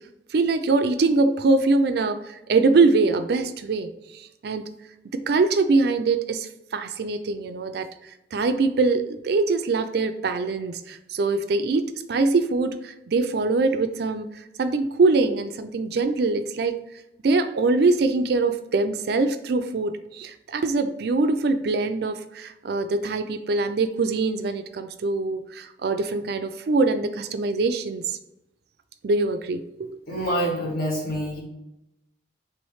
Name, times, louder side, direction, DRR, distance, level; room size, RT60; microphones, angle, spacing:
voice 1, 0.3-4.7 5.1-7.9 8.3-14.3 14.6-16.8 17.2-28.2 29.0-30.3, right 3 dB, 60° right, 9 dB, 0.4 m, -23 dB
voice 2, 30.1-31.4, equal, 55° left, -3 dB, 1.6 m, -26 dB
3.4 x 3.1 x 4.7 m, 0.90 s
head